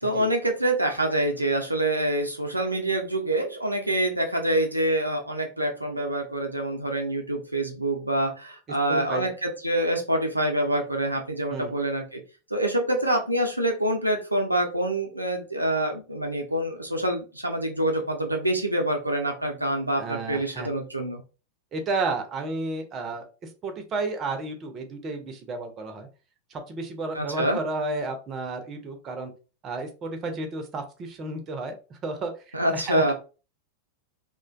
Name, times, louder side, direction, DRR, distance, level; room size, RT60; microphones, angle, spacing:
voice 1, 0.0-12.2 12.5-21.2 27.1-27.6 32.5-33.1, right 1 dB, 85° right, 2 dB, 0.4 m, -26 dB
voice 2, 8.9-9.3 11.5-11.7 20.0-20.7 21.7-23.2 23.6-26.1 26.5-29.3 29.6-33.1, right 3 dB, 30° right, 6 dB, 0.5 m, -32 dB
2.4 x 2.1 x 2.4 m, 0.33 s
figure-of-eight pair, 90°, 0 cm